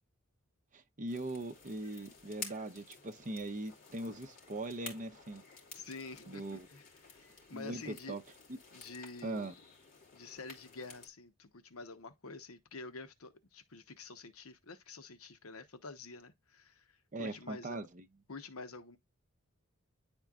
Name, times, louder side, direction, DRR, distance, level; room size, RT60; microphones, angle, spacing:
voice 1, 0.7-5.4 6.3-6.7 7.5-8.2 9.2-9.5 17.1-18.0, right 2 dB, 35° right, 0.7 m, -40 dB
sound 1, 1.1-11.1, left 5 dB, 40° left, 3.2 m, -52 dB
voice 2, 5.7-8.1 8.7-9.5 10.1-17.8 18.3-19.0, left 3 dB, 70° left, 1.0 m, -48 dB
10.5 x 4.4 x 2.4 m
head